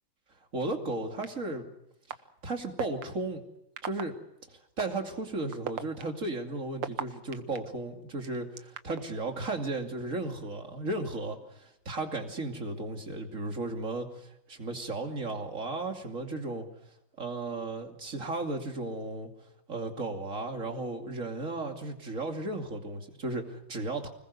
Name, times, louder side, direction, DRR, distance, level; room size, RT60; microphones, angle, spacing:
voice 1, 0.5-1.7 2.4-3.4 3.8-4.2 4.8-16.7 17.2-19.3 19.7-24.1, right 2 dB, 40° right, 3 dB, 2.9 m, -35 dB
sound 1, 1.2-1.3 2.1-2.2 2.8-3.0 3.8-4.0 4.8-4.9 5.5-7.6 8.2-9.0, right 9 dB, 75° right, 1.8 m, -35 dB
25.5 x 21.0 x 6.8 m, 0.87 s
omnidirectional pair, 2.1 m